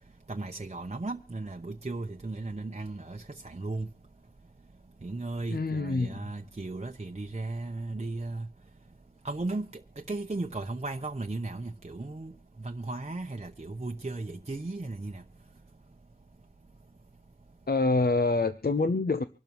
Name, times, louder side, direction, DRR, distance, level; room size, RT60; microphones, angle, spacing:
voice 1, 0.3-3.9 5.0-8.5 9.2-9.7 10.1-12.3 12.6-15.2, right 2 dB, 40° right, 0.8 m, -36 dB
voice 2, 5.5-6.2 17.7-19.2, left 3 dB, 70° left, 0.7 m, -26 dB
25.0 x 12.0 x 3.1 m
wide cardioid pair, 40°, 17 cm